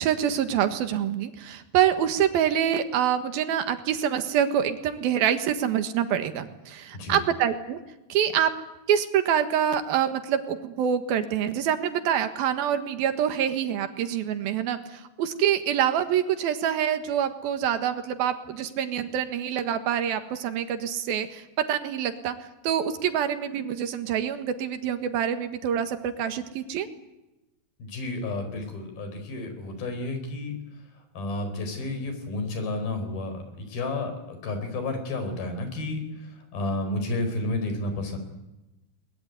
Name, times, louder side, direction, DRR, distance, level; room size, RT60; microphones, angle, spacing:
voice 1, 0.0-7.8 8.1-8.5 8.9-22.4 22.6-26.9, right 9 dB, 85° right, 9 dB, 3.4 m, -26 dB
voice 2, 27.8-30.6 31.1-38.2, left 2 dB, 85° left, 7 dB, 6.2 m, -31 dB
22.5 x 21.0 x 9.4 m, 1.0 s
omnidirectional pair, 4.1 m